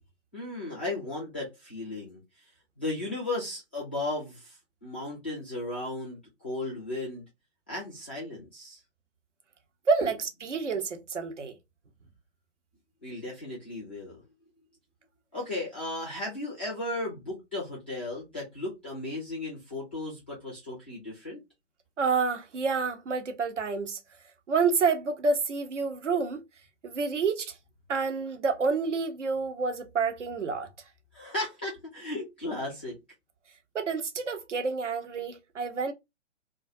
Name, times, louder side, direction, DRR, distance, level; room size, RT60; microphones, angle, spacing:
voice 1, 0.3-2.2 2.8-7.2 7.7-8.8 13.0-14.2 15.3-21.4 31.1-33.0, left 2 dB, 10° left, 0.3 m, -35 dB
voice 2, 9.9-11.6 22.0-24.0 24.5-26.4 26.8-27.6 27.9-30.7 33.7-35.9, right 4 dB, 75° right, 0.8 m, -28 dB
2.3 x 2.2 x 2.6 m
figure-of-eight pair, 125°, 36 cm